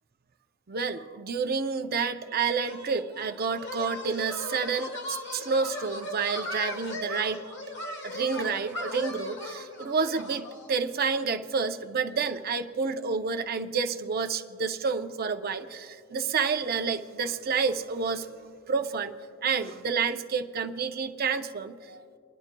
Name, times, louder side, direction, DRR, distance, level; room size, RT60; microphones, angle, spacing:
voice 1, 0.7-7.5 8.0-18.3 18.7-19.1 19.4-22.2, right 5 dB, 50° right, 7 dB, 0.6 m, -29 dB
sound 1, 2.6-10.7, left 1 dB, 60° left, 1.3 m, -38 dB
30.0 x 10.5 x 2.2 m, 2.3 s
head